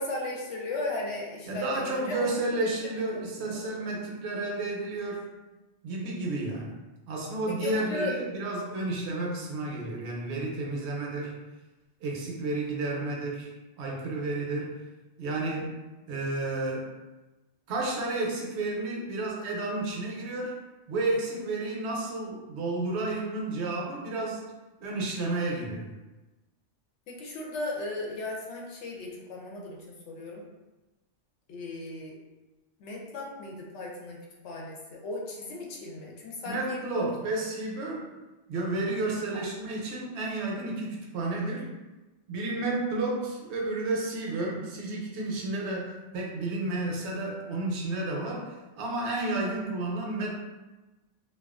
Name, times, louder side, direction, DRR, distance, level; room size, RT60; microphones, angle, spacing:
voice 1, 0.0-2.2 2.5-2.7 3.4-3.5 7.6-8.2 27.1-30.4 31.5-32.1 32.8-36.8 39.3-39.4, left 2 dB, 75° left, -2 dB, 0.9 m, -36 dB
voice 2, 1.5-5.3 5.8-6.8 7.1-11.4 12.0-13.5 13.8-14.8 15.2-15.7 16.1-16.9 17.7-20.6 20.9-24.4 24.8-25.9 36.4-38.1 38.5-41.7 42.3-50.3, right 2 dB, 70° right, -2 dB, 0.8 m, -31 dB
2.3 x 2.3 x 2.4 m, 1.1 s
omnidirectional pair, 1.2 m